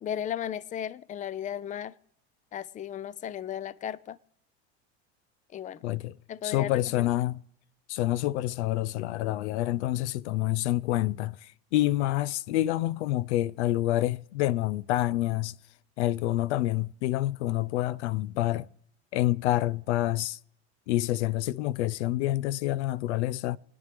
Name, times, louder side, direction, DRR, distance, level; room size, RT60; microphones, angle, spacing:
voice 1, 0.0-1.9 2.5-4.2 5.5-5.8 6.3-7.1, left 9 dB, 25° left, 0.4 m, -35 dB
voice 2, 5.8-6.2 6.4-7.4 7.9-15.6 16.0-18.7 19.1-20.4 20.9-23.6, left 15 dB, 90° left, 0.5 m, -27 dB
28.5 x 9.6 x 3.4 m
supercardioid pair, 95°, 33 cm